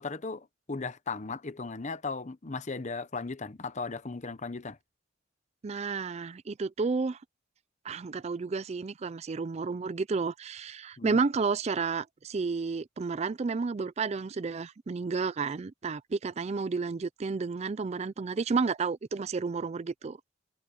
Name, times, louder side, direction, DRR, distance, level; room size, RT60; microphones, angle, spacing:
voice 1, 0.0-4.8 11.0-11.2, left 4 dB, 35° left, 0.8 m, -36 dB
voice 2, 5.6-7.2 7.8-20.2, right 4 dB, 35° right, 0.4 m, -31 dB
head